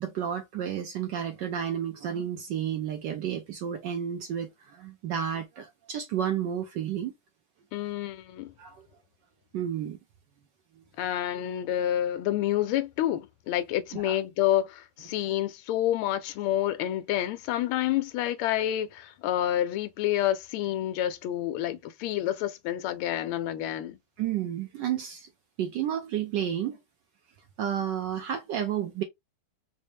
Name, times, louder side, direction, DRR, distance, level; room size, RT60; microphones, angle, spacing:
voice 1, 0.0-7.1 8.6-8.9 9.5-10.0 13.9-14.2 24.2-25.3 25.6-26.8 27.6-29.0, right 9 dB, 75° right, 1.0 m, -31 dB
voice 2, 7.7-8.5 11.0-24.0, left 12 dB, 80° left, 1.4 m, -28 dB
4.2 x 2.0 x 3.1 m
omnidirectional pair, 2.4 m